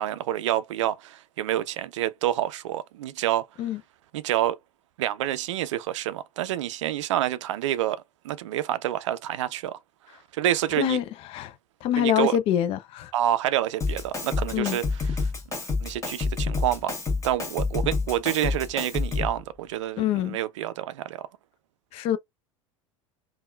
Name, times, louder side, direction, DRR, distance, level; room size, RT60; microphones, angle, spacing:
voice 1, 0.0-3.4 4.1-4.6 5.0-9.8 10.3-11.0 12.0-12.4 13.1-14.8 15.2-15.3 15.8-16.9 17.2-21.2, right 12 dB, 60° right, 0.4 m, -28 dB
voice 2, 11.8-13.1 14.5-14.8 20.0-20.4 21.9-22.2, left 11 dB, 35° left, 0.4 m, -25 dB
Drum kit, 13.8-19.4, left 4 dB, 15° left, 1.0 m, -28 dB
3.5 x 2.3 x 2.2 m
figure-of-eight pair, 75°, 18 cm